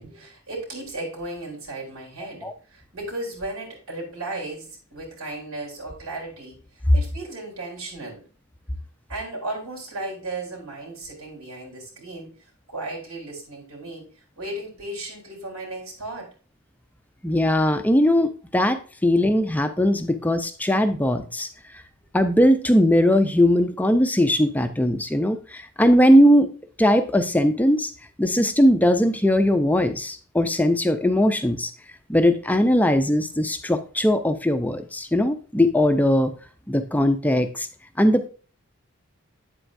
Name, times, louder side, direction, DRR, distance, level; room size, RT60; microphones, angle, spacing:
voice 1, 0.0-6.6 6.9-8.2 9.1-12.3 12.7-14.1 14.4-16.3, right 2 dB, 80° right, -1 dB, 3.9 m, -35 dB
voice 2, 17.2-21.5 22.1-26.5 26.8-27.9 28.2-31.7 32.1-36.3 36.7-37.7 38.0-38.3, equal, 5° left, 8 dB, 0.5 m, -19 dB
8.9 x 7.9 x 2.6 m, 0.37 s
head